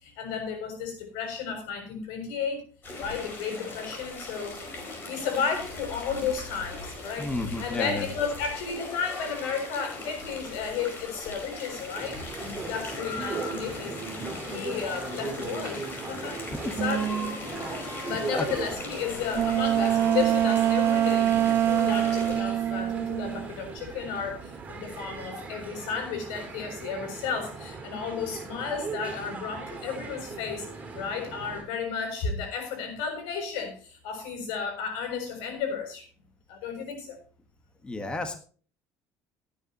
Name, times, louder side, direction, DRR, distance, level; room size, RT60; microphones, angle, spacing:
voice 1, 0.0-2.6 3.0-7.3 7.6-12.2 12.6-14.0 14.4-17.3 18.0-21.3 21.6-36.1 36.5-37.2, left 6 dB, 90° left, 4 dB, 7.0 m, -33 dB
sound 1, 2.8-22.4, left 2 dB, 30° left, 5.0 m, -39 dB
voice 2, 7.2-8.1 16.6-16.8 18.3-18.4 37.8-38.4, left 2 dB, 15° left, 7 dB, 1.5 m, -31 dB
sound 2, 11.9-31.6, right 4 dB, 20° right, 4.7 m, -39 dB
sound 3, 16.8-17.4 19.3-24.0 24.3-25.1, right 11 dB, 35° right, 0.5 m, -25 dB
18.5 x 9.9 x 3.0 m, 0.40 s
cardioid pair, 155°, 7 cm